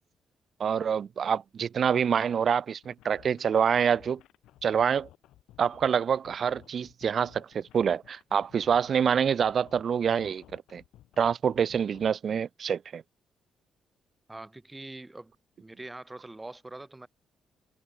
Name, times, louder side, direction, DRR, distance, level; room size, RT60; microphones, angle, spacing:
voice 1, 0.6-4.2 4.6-5.1 5.6-10.8 11.2-13.0, right 7 dB, 50° right, 0.4 m, -26 dB
sound 1, 2.8-12.1, left 14 dB, 85° left, 3.8 m, -56 dB
voice 2, 14.3-15.3 15.6-17.1, right 2 dB, 15° right, 2.7 m, -43 dB
cardioid pair, 90°, 0 cm